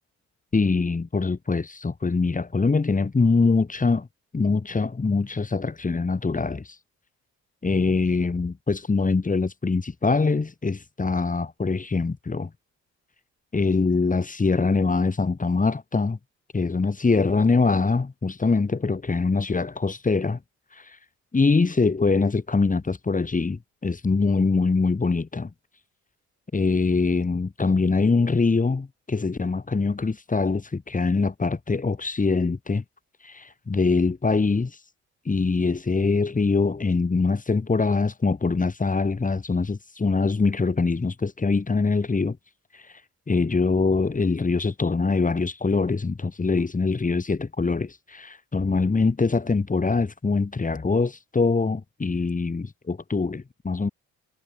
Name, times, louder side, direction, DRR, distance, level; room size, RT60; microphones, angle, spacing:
voice 1, 0.5-4.1 4.3-6.8 7.6-12.5 13.5-16.2 16.5-20.4 20.7-21.0 21.3-25.5 26.5-32.8 33.2-34.7 35.3-42.4 43.3-53.9, left 4 dB, 25° left, 5.5 m, -23 dB
cardioid pair, 90°, 30 cm